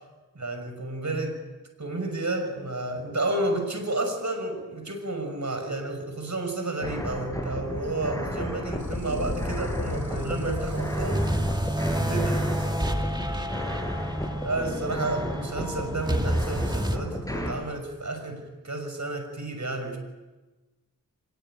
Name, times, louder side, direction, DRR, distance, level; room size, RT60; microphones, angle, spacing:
voice 1, 0.3-1.4 1.8-11.2 11.9-12.7 14.3-20.0, right 2 dB, 60° right, 5 dB, 6.1 m, -31 dB
sound 1, 6.8-17.5, equal, 10° left, 6.1 m, -34 dB
sound 2, 8.8-14.6, left 3 dB, 65° left, 3.5 m, -37 dB
sound 3, 9.8-17.0, right 1 dB, 15° right, 2.6 m, -29 dB
26.0 x 22.0 x 9.1 m, 1.2 s
wide cardioid pair, 45°, 33 cm